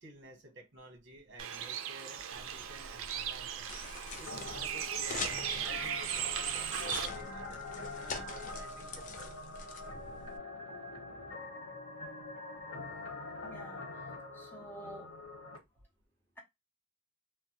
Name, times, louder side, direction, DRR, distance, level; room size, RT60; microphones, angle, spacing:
voice 1, 0.0-3.7 4.2-9.2, right 1 dB, 60° right, 1.0 m, -52 dB
Bird, 1.4-7.1, right 9 dB, 75° right, 0.4 m, -37 dB
sound 1, 2.3-10.4, left 4 dB, 40° left, 0.3 m, -45 dB
sound 2, 4.3-15.6, left 3 dB, 90° left, 1.2 m, -44 dB
voice 2, 13.4-15.1, right 1 dB, 10° left, 0.9 m, -50 dB
2.2 x 2.0 x 2.8 m
head